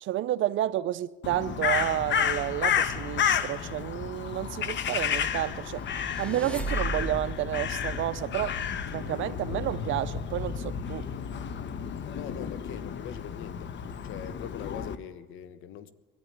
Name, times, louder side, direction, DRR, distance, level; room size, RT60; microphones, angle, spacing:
voice 1, 0.0-5.8 6.2-8.6 8.9-11.1, right 13 dB, 75° right, 0.6 m, -30 dB
Crow, 1.2-15.0, left 7 dB, 65° left, 1.2 m, -31 dB
sound 1, 5.7-7.5, right 3 dB, 5° left, 2.1 m, -35 dB
voice 2, 12.1-13.7 14.0-15.9, left 9 dB, 85° left, 1.2 m, -42 dB
22.0 x 13.5 x 9.5 m
cardioid pair, 90°, 20 cm